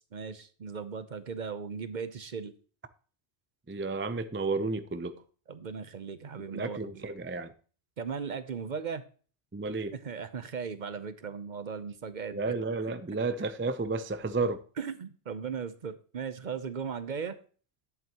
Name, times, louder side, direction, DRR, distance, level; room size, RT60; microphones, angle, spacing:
voice 1, 0.1-2.5 5.5-7.0 8.0-9.0 9.9-12.6 14.8-17.4, right 6 dB, 50° right, 0.8 m, -37 dB
voice 2, 3.7-5.2 6.5-7.5 9.5-9.9 12.3-14.6, right 3 dB, 20° right, 0.3 m, -32 dB
11.0 x 8.2 x 2.9 m
omnidirectional pair, 1.1 m